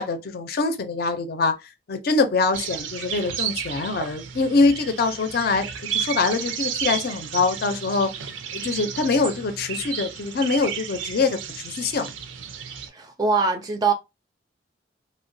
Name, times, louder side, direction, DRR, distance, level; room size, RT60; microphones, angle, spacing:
voice 1, 0.0-8.1 8.5-11.4 11.6-12.1, left 3 dB, 55° left, 0.5 m, -24 dB
sound 1, 2.5-12.9, right 8 dB, 85° right, 0.5 m, -32 dB
voice 2, 12.9-13.9, right 4 dB, 20° right, 0.3 m, -22 dB
2.9 x 2.1 x 2.6 m
head